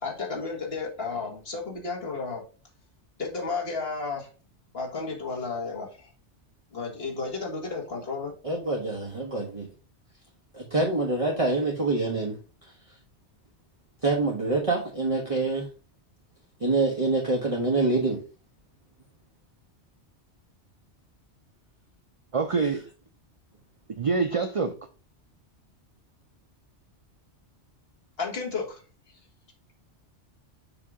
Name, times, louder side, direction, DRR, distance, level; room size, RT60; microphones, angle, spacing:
voice 1, 0.0-2.4 3.2-4.3 4.7-6.1 6.7-8.3 28.2-28.8, left 4 dB, 60° left, 1.8 m, -32 dB
voice 2, 8.4-9.7 10.5-12.4 14.0-15.7 16.6-18.2, right 3 dB, 30° right, 1.0 m, -26 dB
voice 3, 22.3-22.8 24.0-24.7, right 4 dB, 55° right, 0.3 m, -25 dB
6.9 x 2.8 x 4.8 m
omnidirectional pair, 1.2 m